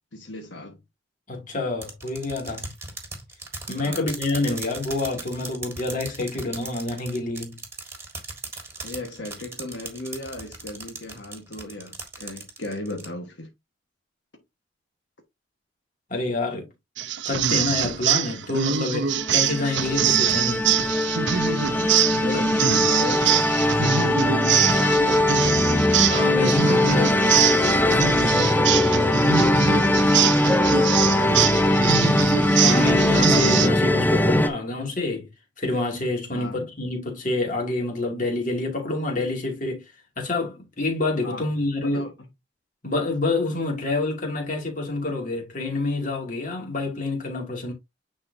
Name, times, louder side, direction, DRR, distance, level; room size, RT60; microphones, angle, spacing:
voice 1, 0.1-0.8 3.8-4.1 8.8-13.5 22.2-25.9 28.3-29.2 29.6-32.1 32.5-33.1 36.3-36.7 41.2-41.5 41.8-42.1, left 1 dB, 75° left, 1.4 m, -35 dB
voice 2, 1.3-2.7 3.7-7.6 16.1-16.7 17.2-20.7 22.2-22.6 26.1-28.4 32.6-35.3 35.6-39.8 40.2-42.0 42.8-47.7, left 2 dB, 45° left, 2.4 m, -27 dB
sound 1, 1.8-13.1, right 3 dB, 15° right, 1.7 m, -37 dB
sound 2, 17.0-33.7, right 9 dB, 75° right, 0.7 m, -24 dB
sound 3, 19.1-34.5, left 1 dB, 10° left, 0.5 m, -21 dB
9.6 x 4.3 x 2.7 m
head